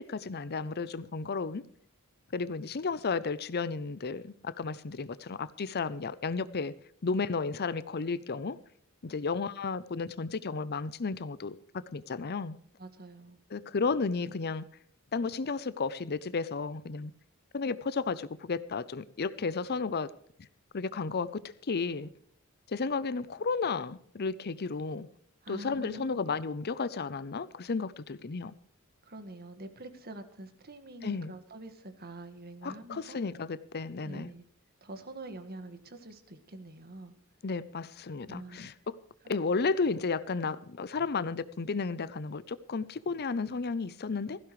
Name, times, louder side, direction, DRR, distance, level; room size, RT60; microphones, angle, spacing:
voice 1, 0.0-1.6 2.3-6.7 7.0-8.6 9.0-11.6 11.9-12.6 13.5-14.6 15.1-17.1 17.5-20.1 20.7-22.1 22.7-25.1 25.5-28.5 31.0-31.3 32.6-34.3 37.4-39.0 39.3-44.4, left 4 dB, 45° left, 0.6 m, -33 dB
voice 2, 12.8-13.4 25.4-26.4 29.0-33.2 34.0-34.4 34.8-37.1 38.2-38.7, right 2 dB, 45° right, 1.8 m, -46 dB
17.0 x 15.5 x 3.2 m
head